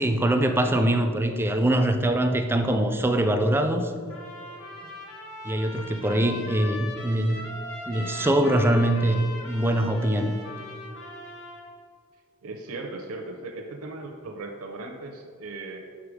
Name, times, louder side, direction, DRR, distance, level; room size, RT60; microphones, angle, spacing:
voice 1, 0.0-3.9 5.4-7.4 7.9-10.4, right 1 dB, 10° right, 6 dB, 0.3 m, -23 dB
Trumpet, 4.1-11.7, left 2 dB, 90° left, 1.3 m, -40 dB
voice 2, 12.4-15.8, right 2 dB, 75° right, 3 dB, 0.6 m, -37 dB
5.6 x 4.9 x 4.9 m, 2.2 s
head